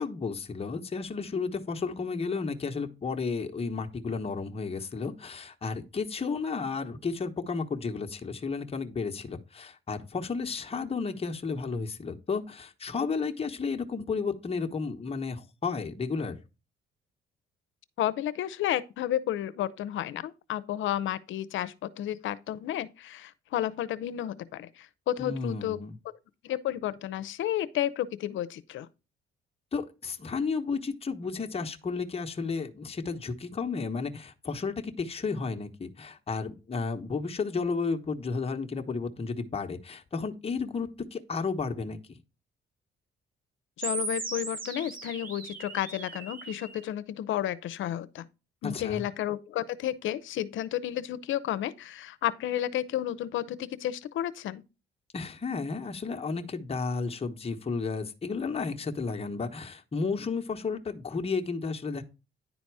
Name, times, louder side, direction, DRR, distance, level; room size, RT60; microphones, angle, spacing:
voice 1, 0.0-16.4 25.2-26.0 29.7-42.2 48.6-49.1 55.1-62.0, left 4 dB, 30° left, 1.1 m, -32 dB
voice 2, 18.0-25.8 26.4-28.9 43.8-48.2 48.6-54.6, left 12 dB, 75° left, 0.7 m, -32 dB
sound 1, 43.8-46.8, right 3 dB, 45° right, 2.5 m, -37 dB
10.0 x 4.1 x 4.7 m
cardioid pair, 90°, 20 cm